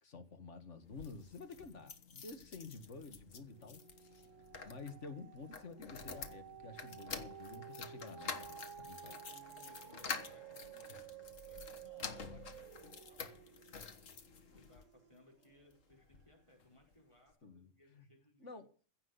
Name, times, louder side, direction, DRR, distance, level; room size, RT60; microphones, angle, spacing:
voice 1, 0.0-3.8 4.1-4.2 4.6-9.2 10.9-11.0 14.5-14.6 17.4-18.0 18.4-18.7, left 4 dB, 65° left, 2.1 m, -51 dB
sound 1, 0.8-14.8 15.4-16.3 16.6-16.7 16.9-17.0, left 5 dB, 80° left, 1.8 m, -49 dB
sound 2, 2.4-3.0 3.3-15.8 16.3-16.4, right 9 dB, 80° right, 1.2 m, -54 dB
voice 2, 8.9-13.9 14.5-18.5, equal, 25° left, 4.5 m, -65 dB
16.0 x 6.0 x 8.1 m
omnidirectional pair, 1.3 m